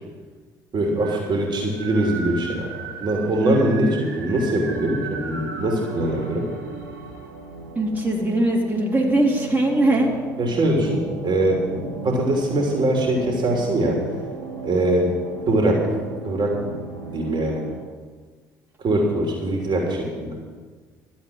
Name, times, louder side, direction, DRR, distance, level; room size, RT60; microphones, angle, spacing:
voice 1, 0.7-3.9 4.1-6.4 10.4-13.9 14.6-15.1 15.5-15.7 16.2-16.5 17.0-17.6 18.8-20.3, right 1 dB, 45° right, 0 dB, 3.3 m, -22 dB
sound 1, 0.8-17.9, right 3 dB, 90° right, 1.5 m, -36 dB
voice 2, 7.7-10.2, right 1 dB, 15° right, -2 dB, 3.8 m, -20 dB
13.0 x 8.1 x 8.8 m, 1.5 s
figure-of-eight pair, 55°, 11 cm